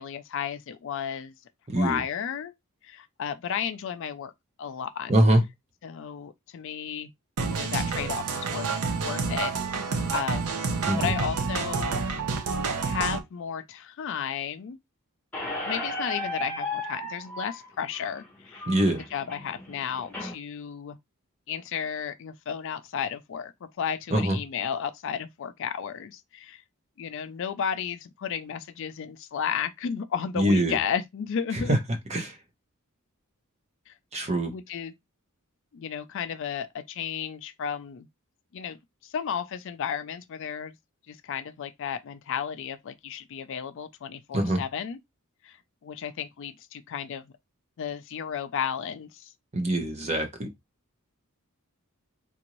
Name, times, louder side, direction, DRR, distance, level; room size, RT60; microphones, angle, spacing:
voice 1, 0.0-1.3 1.8-2.5 2.8-4.3 4.6-5.1 5.8-7.1 7.5-8.7 9.0-9.9 10.1-10.5 11.0-12.1 12.8-14.8 15.6-21.0 21.5-26.6 27.0-31.8 33.9-34.9 35.7-38.1 38.5-38.8 39.0-40.8 41.1-45.0 45.4-45.6 45.8-47.3 47.8-49.3, left 7 dB, 55° left, 0.4 m, -33 dB
voice 2, 1.7-2.0 5.1-5.4 10.9-11.1 18.7-19.0 24.1-24.4 30.4-30.8 31.5-31.8 32.1-32.4 34.1-34.5 44.3-44.6 49.5-50.5, right 1 dB, 30° right, 0.8 m, -23 dB
sound 1, 7.4-13.2, right 4 dB, 85° right, 0.7 m, -29 dB
Squeak, 15.3-20.3, left 1 dB, 5° left, 0.9 m, -35 dB
3.8 x 2.6 x 3.0 m
head